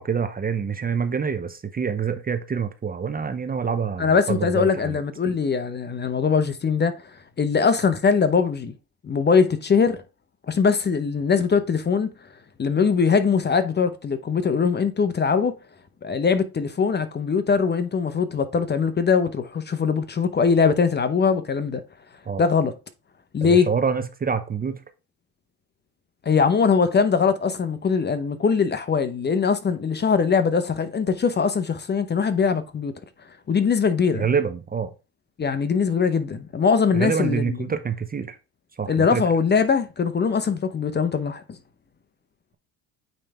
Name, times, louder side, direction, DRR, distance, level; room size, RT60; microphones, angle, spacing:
voice 1, 0.0-5.0 22.3-22.4 23.4-24.8 34.1-34.9 36.9-38.4 38.8-39.2, right 6 dB, 20° right, 0.8 m, -26 dB
voice 2, 4.0-7.0 7.4-8.7 9.0-10.0 10.5-12.1 12.6-15.5 16.0-21.8 22.4-22.7 23.3-23.7 26.3-32.9 33.5-34.3 35.4-37.4 38.9-41.4, left 5 dB, 25° left, 0.8 m, -21 dB
9.0 x 3.4 x 3.5 m
supercardioid pair, 95°, 40 cm